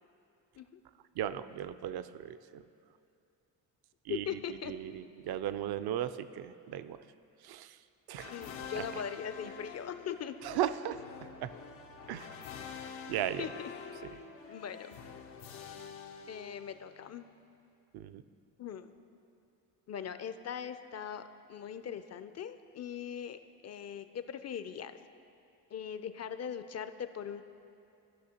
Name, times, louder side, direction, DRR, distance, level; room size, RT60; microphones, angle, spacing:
voice 1, 1.2-2.6 4.1-7.0 7.4-7.7 8.1-8.3 8.8-8.9 10.4-11.0 11.4-11.5 12.1-12.3 13.1-13.5 17.9-18.2, right 11 dB, 55° right, 13 dB, 0.5 m, -36 dB
voice 2, 4.1-4.7 8.3-10.3 13.4-13.5 14.5-15.0 16.3-17.3 18.6-18.9 19.9-25.0 25.7-27.4, left 8 dB, 35° left, 11 dB, 0.4 m, -40 dB
sound 1, 8.2-17.0, left 6 dB, 85° left, 0.7 m, -47 dB
14.5 x 5.9 x 2.9 m, 2.6 s
supercardioid pair, 55°, 46 cm